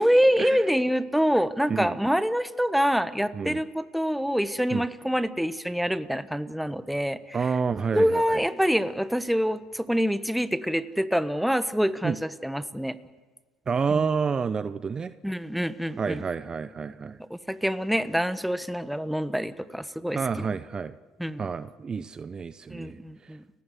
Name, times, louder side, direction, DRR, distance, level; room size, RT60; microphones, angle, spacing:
voice 1, 0.0-7.4 7.9-13.0 15.2-16.2 17.3-20.5 21.2-21.5 22.7-23.4, equal, ahead, 13 dB, 1.2 m, -26 dB
voice 2, 7.3-8.4 12.0-12.2 13.7-15.1 16.0-17.2 20.1-20.9 21.4-23.0, right 5 dB, 35° right, 14 dB, 0.7 m, -29 dB
30.0 x 15.5 x 8.2 m, 1.4 s
hypercardioid pair, 60°, 2 cm